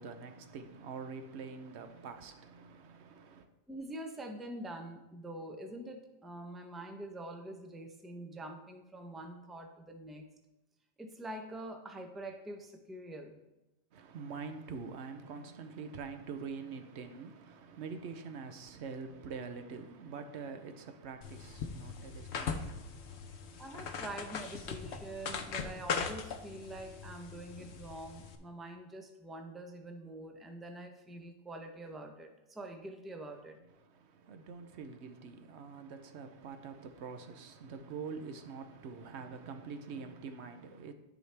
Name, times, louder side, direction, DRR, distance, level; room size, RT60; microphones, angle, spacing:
voice 1, 0.0-3.5 13.9-24.0 33.8-40.9, right 5 dB, 90° right, 1.0 m, -45 dB
voice 2, 3.7-10.3 11.0-13.4 23.6-33.6, right 1 dB, ahead, 0.5 m, -45 dB
sound 1, 21.2-28.4, left 5 dB, 85° left, 0.9 m, -40 dB
10.5 x 5.0 x 3.3 m
omnidirectional pair, 1.1 m